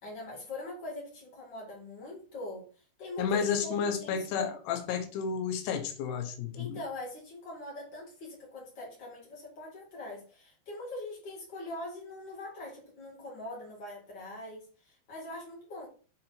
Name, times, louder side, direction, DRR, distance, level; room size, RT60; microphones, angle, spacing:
voice 1, 0.0-2.7 3.0-4.5 6.5-15.9, left 2 dB, 30° left, 2.8 m, -42 dB
voice 2, 3.2-6.8, left 6 dB, 90° left, 2.9 m, -31 dB
7.1 x 3.9 x 4.3 m
omnidirectional pair, 4.6 m